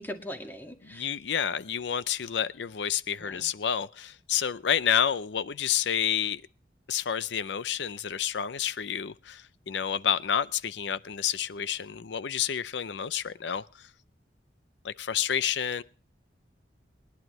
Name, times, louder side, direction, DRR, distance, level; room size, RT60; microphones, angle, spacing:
voice 1, 0.0-1.1 3.2-3.5, equal, 10° left, 2.0 m, -40 dB
voice 2, 0.9-6.4 6.9-13.6 14.8-15.8, left 8 dB, 85° left, 0.5 m, -29 dB
22.5 x 11.0 x 3.1 m
head